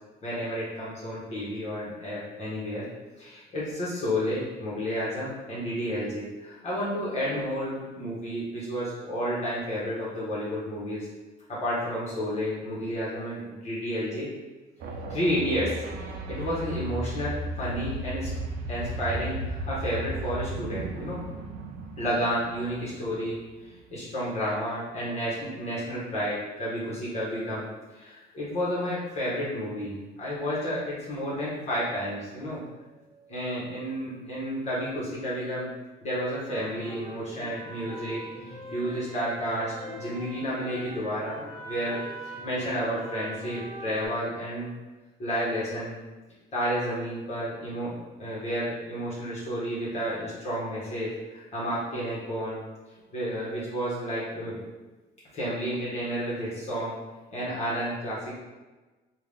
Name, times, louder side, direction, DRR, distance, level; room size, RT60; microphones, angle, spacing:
voice 1, 0.2-2.9 3.2-11.1 11.5-14.3 15.1-15.8 16.3-18.3 18.7-21.2 22.0-32.6 32.9-35.7 36.0-44.7 45.2-46.0 46.5-52.6 53.1-54.6 55.3-56.9 57.3-58.4, equal, 40° left, -8 dB, 1.3 m, -31 dB
sound 1, 14.8-23.9, right 1 dB, 65° right, 0.5 m, -35 dB
sound 2, 36.5-44.1, right 1 dB, 20° left, 1.5 m, -42 dB
3.5 x 2.5 x 3.5 m, 1.2 s
cardioid pair, 110°, 17 cm